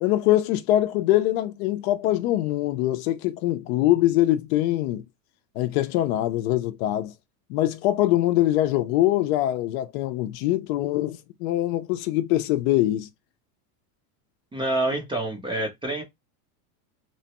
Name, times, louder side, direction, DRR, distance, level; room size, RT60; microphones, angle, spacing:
voice 1, 0.0-5.0 5.6-7.1 7.5-13.1, left 14 dB, 60° left, 0.6 m, -23 dB
voice 2, 14.5-16.0, right 2 dB, 10° right, 0.5 m, -27 dB
3.1 x 2.1 x 2.9 m
supercardioid pair, 130°, 48 cm